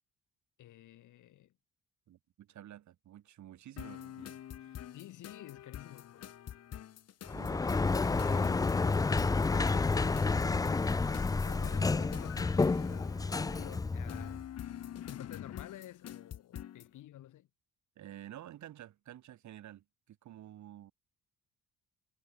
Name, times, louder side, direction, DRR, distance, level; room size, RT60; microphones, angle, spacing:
voice 1, 0.6-1.5 4.9-6.3 7.6-9.2 9.5-13.2 13.5-14.4 15.1-17.5, left 13 dB, 80° left, 6.7 m, -51 dB
voice 2, 2.1-4.8 7.3-7.8 18.0-20.9, right 12 dB, 70° right, 2.5 m, -51 dB
sound 1, 3.8-16.9, left 10 dB, 55° left, 1.1 m, -46 dB
Sliding door, 7.3-14.4, left 4 dB, 15° left, 0.4 m, -30 dB
cardioid pair, 90°, 30 cm